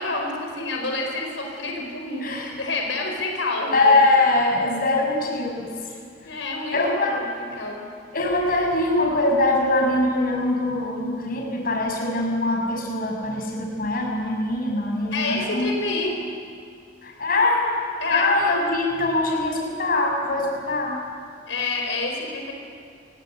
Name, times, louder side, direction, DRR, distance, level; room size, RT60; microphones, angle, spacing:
voice 1, 0.0-2.2 2.6-4.0 6.2-7.2 7.6-7.8 15.1-16.1 18.0-18.3 21.5-22.5, left 3 dB, 80° left, 1 dB, 4.9 m, -28 dB
voice 2, 2.2-2.5 3.7-5.7 6.2-6.4 6.7-7.2 7.5-7.6 8.1-15.7 16.0-16.1 17.0-17.6 18.1-21.0, left 2 dB, 50° left, 1 dB, 6.4 m, -22 dB
29.0 x 18.5 x 9.2 m, 2.3 s
head